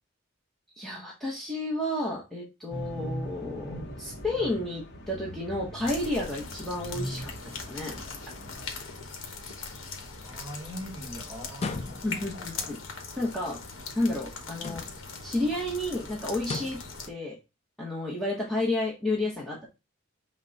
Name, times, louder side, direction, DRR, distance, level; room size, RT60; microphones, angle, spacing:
voice 1, 0.8-8.0 12.0-12.8 13.2-13.6 13.9-14.8 15.2-16.8 17.1-17.4 17.8-19.7, left 1 dB, ahead, 0.9 m, -31 dB
sound 1, 2.7-8.7, equal, 50° left, 0.9 m, -40 dB
sound 2, 5.8-17.1, left 4 dB, 75° left, 1.1 m, -41 dB
voice 2, 10.2-12.7, equal, 20° right, 1.5 m, -42 dB
sound 3, 11.5-12.3 14.5-15.2 16.4-16.9, left 3 dB, 30° left, 0.4 m, -36 dB
5.9 x 2.2 x 3.9 m
head